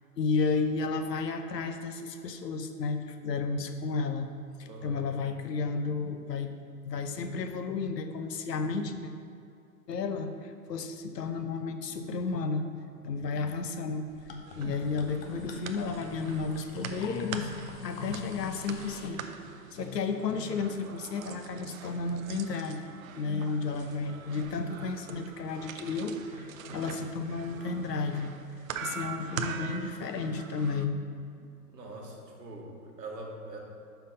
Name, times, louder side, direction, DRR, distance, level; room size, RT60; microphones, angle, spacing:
voice 1, 0.2-4.3 4.6-6.5 6.8-9.1 9.9-28.6 28.8-31.0, left 4 dB, 80° left, 7 dB, 0.8 m, -33 dB
voice 2, 4.6-5.1 14.8-14.9 31.7-33.6, right 2 dB, 90° right, 0 dB, 1.6 m, -43 dB
sound 1, 14.1-19.1, left 4 dB, 35° left, 0.7 m, -48 dB
sound 2, 14.5-30.9, right 7 dB, 55° right, 0.6 m, -43 dB
5.7 x 4.6 x 5.4 m, 2.5 s
hypercardioid pair, 135°, 48 cm